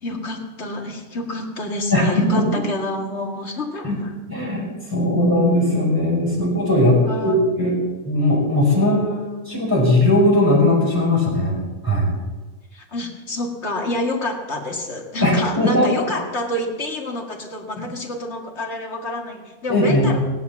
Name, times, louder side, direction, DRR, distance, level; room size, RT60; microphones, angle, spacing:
voice 1, 0.0-4.1 7.0-7.4 8.8-9.5 12.7-20.3, left 1 dB, 40° left, 1 dB, 2.3 m, -28 dB
voice 2, 1.9-2.6 3.8-3.9 4.3-7.7 8.0-9.0 9.5-11.5 11.8-12.1 15.2-15.9 17.8-17.9 19.7-20.1, left 1 dB, 10° right, -5 dB, 5.4 m, -18 dB
16.5 x 10.5 x 7.2 m, 1.2 s
omnidirectional pair, 1.9 m